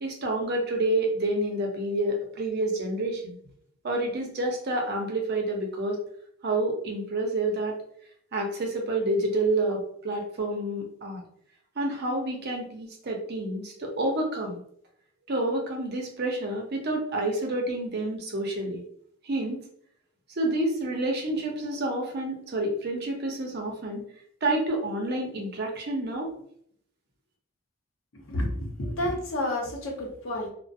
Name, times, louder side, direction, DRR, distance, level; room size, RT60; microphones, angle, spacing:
voice 1, 0.0-3.4 3.8-6.0 6.4-7.8 8.3-11.2 11.8-14.6 15.3-18.8 19.2-19.7 20.3-24.0 24.4-26.3, right 1 dB, 55° right, 2 dB, 0.6 m, -28 dB
voice 2, 28.3-30.5, left 1 dB, 75° left, 0 dB, 0.7 m, -30 dB
2.3 x 2.1 x 2.5 m, 0.65 s
head